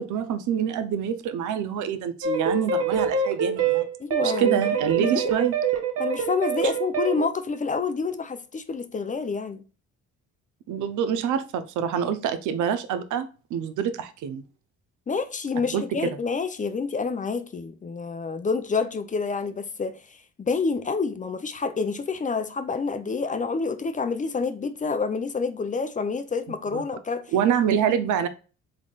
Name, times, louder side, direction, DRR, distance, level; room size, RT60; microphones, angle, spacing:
voice 1, 0.0-3.9 4.2-5.5 10.7-14.4 15.7-16.2 26.7-26.8 27.3-28.3, right 8 dB, 80° right, 0.6 m, -26 dB
sound 1, 2.2-7.3, right 6 dB, 55° right, 1.0 m, -25 dB
voice 2, 4.0-4.7 5.0-5.2 6.0-9.6 15.1-20.0 20.4-27.3 27.7-27.8, left 4 dB, 25° left, 0.5 m, -28 dB
3.6 x 3.6 x 2.3 m
cardioid pair, 90°, 30 cm